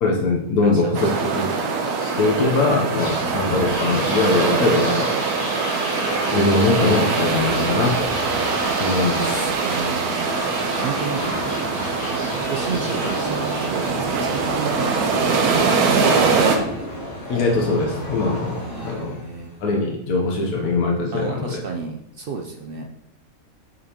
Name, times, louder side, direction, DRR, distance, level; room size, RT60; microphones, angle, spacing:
voice 1, 0.0-1.5 2.0-5.1 6.3-8.1 8.6-9.5 9.8-9.9 17.3-19.1 19.6-21.6, left 3 dB, 85° left, -1 dB, 1.4 m, -22 dB
voice 2, 0.6-1.2 9.6-11.4 12.4-16.5 18.6-19.5 21.1-22.9, right 5 dB, 60° right, 2 dB, 0.6 m, -31 dB
sound 1, 0.9-16.6, right 4 dB, 85° right, 1.3 m, -23 dB
sound 2, 3.0-19.7, equal, 35° left, 2.4 m, -31 dB
8.4 x 5.2 x 2.9 m, 0.82 s
omnidirectional pair, 1.6 m